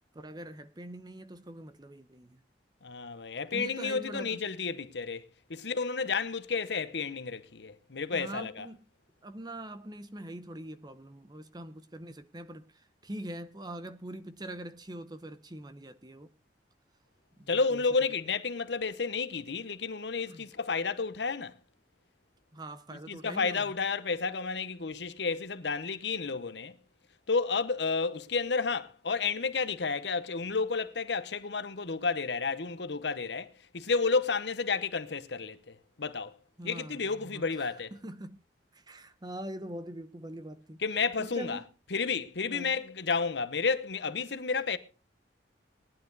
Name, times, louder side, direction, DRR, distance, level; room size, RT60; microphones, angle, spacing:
voice 1, 0.1-2.4 3.5-4.4 8.1-8.8 9.2-12.7 13.0-16.3 17.4-17.8 20.3-20.4 22.5-23.7 36.6-37.4 37.9-38.4 38.7-40.8 41.2-41.6 42.5-42.8, right 1 dB, 25° right, 0.9 m, -43 dB
voice 2, 2.8-8.7 17.5-21.6 22.9-26.7 27.3-36.3 36.6-37.9 40.8-41.6 41.9-44.8, left 4 dB, 70° left, 0.9 m, -31 dB
18.5 x 10.5 x 4.0 m
head